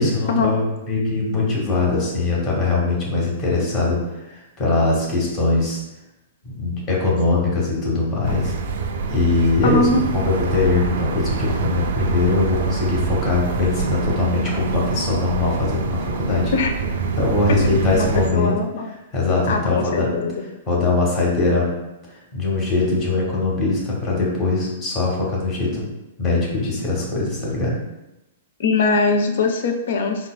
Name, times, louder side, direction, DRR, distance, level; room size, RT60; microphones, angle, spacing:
voice 1, 0.0-5.8 6.4-8.5 9.1-16.5 17.2-18.5 19.1-20.1 20.7-21.7 22.3-25.9 26.2-27.7, left 3 dB, 30° left, -3 dB, 1.2 m, -21 dB
sound 1, 8.2-18.3, right 5 dB, 60° right, 0.3 m, -26 dB
voice 2, 9.6-10.1 16.5-16.7 17.5-17.6 17.9-18.9 19.5-20.3 28.6-30.3, left 3 dB, 60° left, 5 dB, 0.4 m, -21 dB
3.7 x 2.4 x 2.2 m, 0.94 s
figure-of-eight pair, 110°, 0 cm